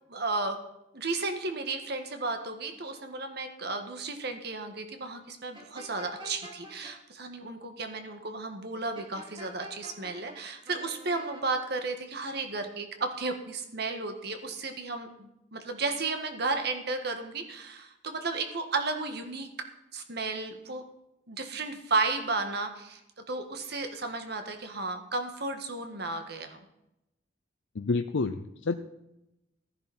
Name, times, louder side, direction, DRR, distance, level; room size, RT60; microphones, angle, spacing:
voice 1, 0.1-0.6 0.9-19.5 19.9-20.8 21.3-23.0 23.3-26.6, right 3 dB, 60° right, 6 dB, 1.7 m, -33 dB
sound 1, 5.5-6.9 9.0-10.4 10.7-11.4, right 1 dB, 25° right, 2.7 m, -46 dB
voice 2, 27.8-28.8, left 3 dB, 85° left, 7 dB, 0.6 m, -29 dB
15.0 x 10.5 x 4.3 m, 0.88 s
head